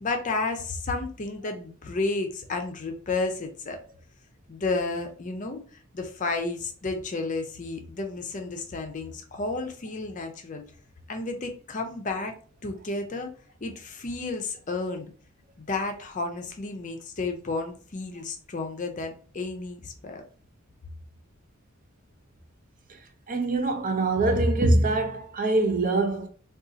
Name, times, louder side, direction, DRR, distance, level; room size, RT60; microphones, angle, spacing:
voice 1, 0.0-3.8 4.5-10.6 11.1-12.4 12.6-13.3 13.6-15.1 15.6-20.2, left 3 dB, 35° left, 0.5 m, -32 dB
voice 2, 23.3-26.3, right 2 dB, 40° right, 0.5 m, -23 dB
2.6 x 2.3 x 3.8 m
head